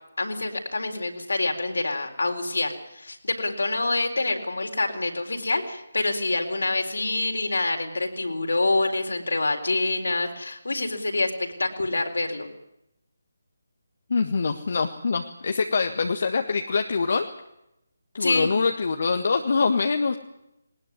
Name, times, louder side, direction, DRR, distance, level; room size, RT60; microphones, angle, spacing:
voice 1, 0.2-12.5 18.2-18.5, left 2 dB, 65° left, 3 dB, 4.1 m, -26 dB
voice 2, 14.1-17.3 18.1-20.2, left 4 dB, 50° left, 5 dB, 1.7 m, -24 dB
20.5 x 20.0 x 9.6 m, 0.85 s
figure-of-eight pair, 150°, 0 cm